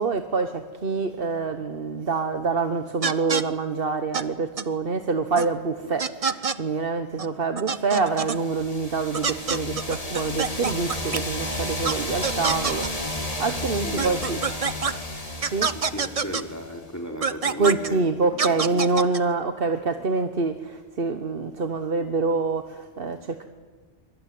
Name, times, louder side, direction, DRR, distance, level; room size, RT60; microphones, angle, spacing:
voice 1, 0.0-14.4 15.4-15.7 17.6-23.4, right 4 dB, 55° right, 8 dB, 1.3 m, -26 dB
sound 1, 3.0-3.4 4.1-4.2 4.6-4.7 5.4-5.5 6.0-6.6 7.2-7.3 7.6-8.4 9.1-11.2 11.8-11.9 12.2-12.9 14.0-14.9 15.4-16.4 17.2-17.9 18.4-19.2, right 5 dB, 35° right, 0.8 m, -26 dB
sound 2, 8.2-16.9, left 1 dB, 30° left, 2.6 m, -32 dB
voice 2, 13.8-14.2 15.7-18.9, equal, 15° left, 3 dB, 3.1 m, -35 dB
24.0 x 24.0 x 9.4 m, 1.4 s
omnidirectional pair, 1.2 m